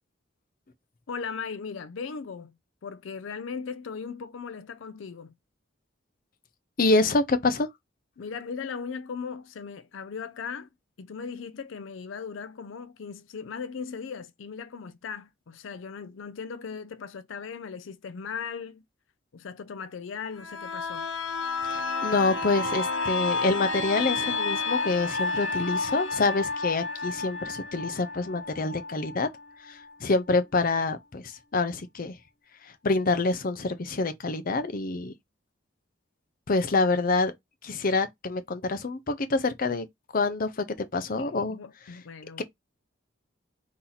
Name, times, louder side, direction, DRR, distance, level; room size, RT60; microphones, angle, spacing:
voice 1, 1.1-2.5 2.8-5.3 8.2-10.7 11.0-18.8 19.3-21.1 41.2-42.4, left 6 dB, 90° left, 0.5 m, -38 dB
voice 2, 6.8-7.7 21.6-29.3 29.7-32.2 32.6-35.1 36.5-37.3 37.6-39.9 40.1-41.6 42.4-42.5, left 3 dB, 50° left, 0.6 m, -26 dB
sound 1, 20.4-29.9 30.3-30.4, left 3 dB, 75° left, 0.9 m, -31 dB
4.2 x 2.8 x 3.9 m
head